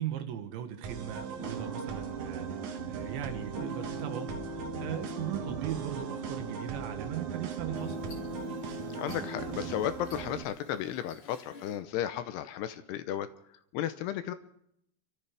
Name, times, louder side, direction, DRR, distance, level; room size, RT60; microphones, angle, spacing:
voice 1, 0.0-8.0, right 10 dB, 85° right, 5 dB, 3.7 m, -38 dB
sound 1, 0.8-10.4, right 5 dB, 65° right, 2.0 m, -40 dB
sound 2, 1.4-9.8, right 3 dB, 45° right, 1.7 m, -40 dB
sound 3, 7.7-11.8, left 2 dB, 35° left, 2.5 m, -55 dB
voice 2, 9.0-13.3 13.7-14.3, left 11 dB, 80° left, 11 dB, 2.7 m, -34 dB
28.0 x 13.5 x 3.4 m, 0.74 s
omnidirectional pair, 5.1 m